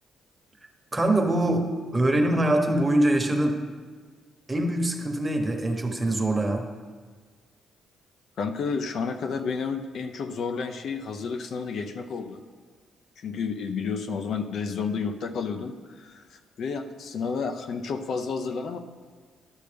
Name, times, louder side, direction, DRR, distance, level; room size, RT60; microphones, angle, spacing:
voice 1, 0.9-3.6 4.5-6.7, right 1 dB, 20° right, 3 dB, 1.2 m, -23 dB
voice 2, 8.4-12.4 13.2-18.8, left 5 dB, 65° left, 6 dB, 0.6 m, -31 dB
12.0 x 6.5 x 3.4 m, 1.5 s
cardioid pair, 90°, 0 cm